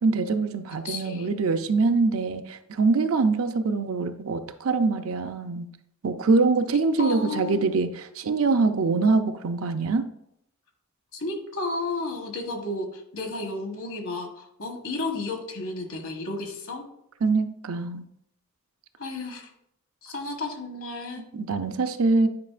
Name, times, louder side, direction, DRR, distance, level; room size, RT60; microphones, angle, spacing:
voice 1, 0.0-5.7 6.0-10.1 17.2-18.1 21.3-22.3, right 3 dB, 65° right, 8 dB, 0.5 m, -24 dB
voice 2, 0.8-1.3 7.0-7.6 11.1-16.8 19.0-19.5 20.0-21.2, left 2 dB, 65° left, 3 dB, 1.2 m, -32 dB
9.5 x 5.0 x 2.5 m, 0.75 s
head